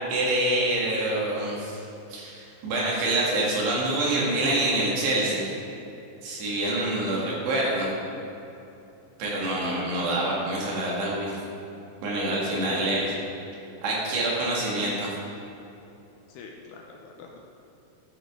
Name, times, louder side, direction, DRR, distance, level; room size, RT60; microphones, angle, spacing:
voice 1, 0.1-1.8 2.1-5.4 6.2-7.9 9.2-11.3 12.0-13.2 13.8-15.1, right 1 dB, 70° right, -4 dB, 4.0 m, -26 dB
voice 2, 12.5-12.9 16.3-17.4, left 6 dB, 80° left, 1 dB, 2.5 m, -41 dB
13.0 x 9.0 x 3.7 m, 2.9 s
omnidirectional pair, 5.2 m